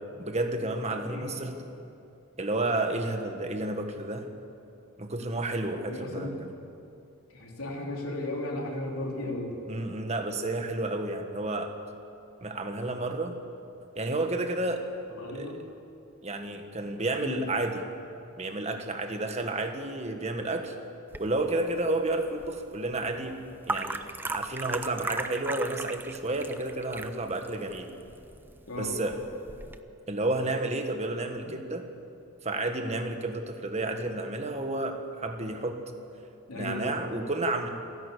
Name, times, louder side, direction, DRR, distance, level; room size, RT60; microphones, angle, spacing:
voice 1, 0.2-1.6 2.4-4.3 5.0-6.5 9.7-11.7 12.4-13.4 13.9-14.8 15.3-15.6 16.2-17.8 18.4-20.7 21.2-23.4 23.7-27.9 28.8-29.2 30.1-31.8 32.4-35.8 36.5-37.7, right 2 dB, 30° right, 5 dB, 1.6 m, -31 dB
voice 2, 1.1-1.4 5.9-6.5 7.3-9.5 15.1-15.6 17.2-17.4 22.1-22.2 28.7-29.1 31.3-31.5 36.5-37.0, left 1 dB, 75° left, -1 dB, 3.7 m, -35 dB
sound 1, 21.1-29.8, right 2 dB, 10° right, 0.6 m, -38 dB
28.5 x 11.5 x 8.6 m, 2.6 s
head